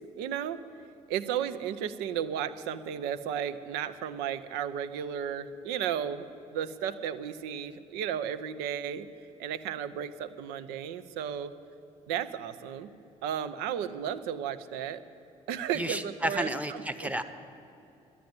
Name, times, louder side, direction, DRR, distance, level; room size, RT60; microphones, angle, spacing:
voice 1, 0.2-0.6 1.1-9.1 9.4-11.5 12.1-12.9 13.2-15.0 15.5-17.1, right 9 dB, 70° right, 11 dB, 0.7 m, -34 dB
voice 2, 15.7-17.2, right 1 dB, 10° right, 9 dB, 1.0 m, -32 dB
10.0 x 9.5 x 9.6 m, 2.8 s
hypercardioid pair, 50°, 17 cm